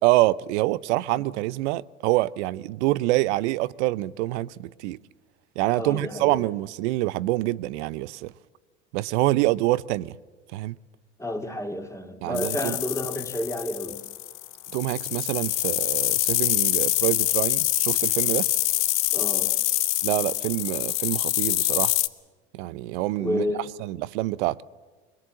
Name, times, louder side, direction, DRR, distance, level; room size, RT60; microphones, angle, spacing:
voice 1, 0.0-5.0 5.6-8.3 8.9-10.1 10.5-10.7 12.2-12.7 14.7-18.5 20.0-21.9 22.5-23.4 23.8-24.6, right 18 dB, 70° right, 0.7 m, -26 dB
voice 2, 5.7-6.4 11.2-14.0 19.1-19.5 23.2-23.6, left 1 dB, 10° left, 2.3 m, -30 dB
sound 1, 12.3-22.1, left 17 dB, 60° left, 1.0 m, -25 dB
22.5 x 21.5 x 7.5 m
hypercardioid pair, 75°, 36 cm